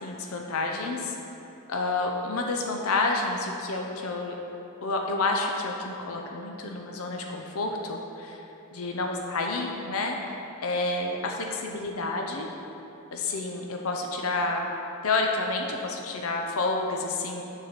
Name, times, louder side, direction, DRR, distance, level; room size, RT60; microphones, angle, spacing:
voice 1, 0.0-1.1 1.7-4.4 4.8-8.4 8.7-12.5 13.1-14.7 15.0-17.4, left 3 dB, 65° left, 1 dB, 0.6 m, -29 dB
7.2 x 4.0 x 6.7 m, 3.0 s
head